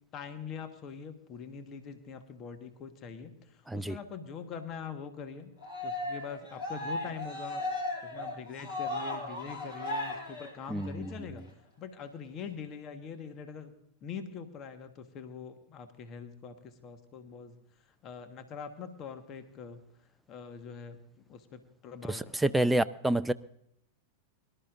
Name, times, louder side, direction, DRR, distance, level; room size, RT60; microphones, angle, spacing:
voice 1, 0.0-5.5 5.8-7.6 8.0-11.4 11.8-13.7 14.0-19.8 20.3-21.0 21.3-22.3 22.6-22.8, left 6 dB, 35° left, 8 dB, 1.5 m, -43 dB
voice 2, 3.7-4.0 10.7-11.1 22.1-23.3, right 1 dB, 5° right, 11 dB, 0.4 m, -28 dB
Cheering, 5.6-11.1, left 2 dB, 55° left, 6.0 m, -36 dB
23.5 x 12.5 x 2.6 m, 0.72 s
figure-of-eight pair, 90°, 0 cm